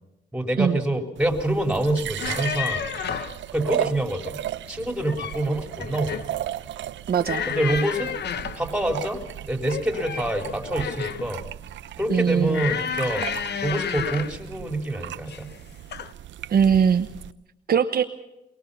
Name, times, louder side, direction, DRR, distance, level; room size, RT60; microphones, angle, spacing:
voice 1, 0.3-2.9 3.5-4.4 4.7-6.3 7.5-8.1 8.6-9.2 9.5-11.4 12.0-13.3 13.6-15.5, right 1 dB, 5° right, 4 dB, 4.2 m, -26 dB
sound 1, 1.2-17.3, right 12 dB, 70° right, 0.7 m, -36 dB
sound 2, 2.0-3.4 4.8-5.4 5.8-6.3 7.2-8.7 9.6-11.3 12.5-14.4 15.3-15.6 15.9-16.1, left 8 dB, 60° left, 1.1 m, -31 dB
voice 2, 7.1-7.4 12.1-12.6 16.5-17.1 17.7-18.0, right 7 dB, 50° right, 6 dB, 1.2 m, -20 dB
23.5 x 21.5 x 5.7 m, 0.90 s
cardioid pair, 90°, 20 cm